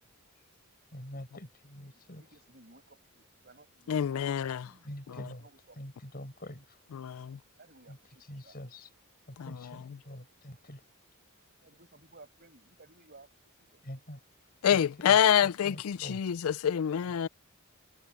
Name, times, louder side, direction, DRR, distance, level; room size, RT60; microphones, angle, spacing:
voice 1, 0.9-2.2 4.8-5.4 5.8-6.8 7.9-8.0 8.3-8.9 9.3-10.8 13.8-14.2 14.7-14.8 15.1-16.2, left 1 dB, 45° left, 5.0 m, -45 dB
voice 2, 1.9-4.3 4.6-5.8 7.6-8.6 10.5-10.6 11.6-13.3 13.6-13.8, right 2 dB, 45° right, 6.2 m, -58 dB
voice 3, 3.9-4.6 5.1-5.3 6.9-7.4 9.4-10.0 14.6-17.3, left 9 dB, 75° left, 0.4 m, -27 dB
head